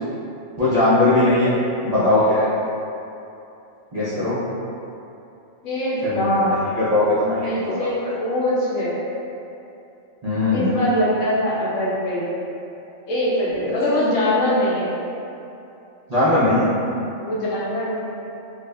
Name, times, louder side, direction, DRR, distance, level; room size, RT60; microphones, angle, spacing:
voice 1, 0.6-1.6 1.8-2.5 3.9-4.4 6.0-6.5 6.8-7.9 10.2-10.7 13.7-13.8 16.1-16.7, left 2 dB, 50° right, -13 dB, 0.5 m, -19 dB
voice 2, 5.6-6.8 7.4-9.0 10.5-12.3 13.1-14.9 17.2-18.1, left 1 dB, 75° left, -7 dB, 1.1 m, -22 dB
4.7 x 2.2 x 2.3 m, 2.8 s
omnidirectional pair, 1.4 m